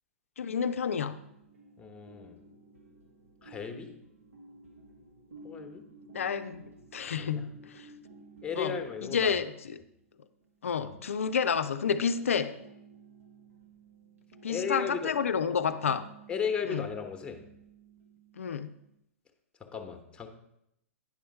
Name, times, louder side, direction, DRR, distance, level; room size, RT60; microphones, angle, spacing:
voice 1, 0.4-1.2 6.1-6.7 6.9-7.9 8.6-9.8 10.6-12.6 14.4-16.1 16.7-16.9 18.4-18.7, left 6 dB, 70° left, 10 dB, 0.5 m, -30 dB
sound 1, 1.1-19.0, right 2 dB, 75° right, 1.4 m, -54 dB
voice 2, 1.8-2.4 3.4-3.9 5.4-5.8 7.2-7.5 8.4-9.4 10.8-10.9 14.5-15.1 16.3-17.4 19.6-20.3, left 6 dB, 15° left, 6 dB, 1.0 m, -35 dB
9.5 x 5.5 x 5.3 m, 0.80 s
figure-of-eight pair, 105°, 8 cm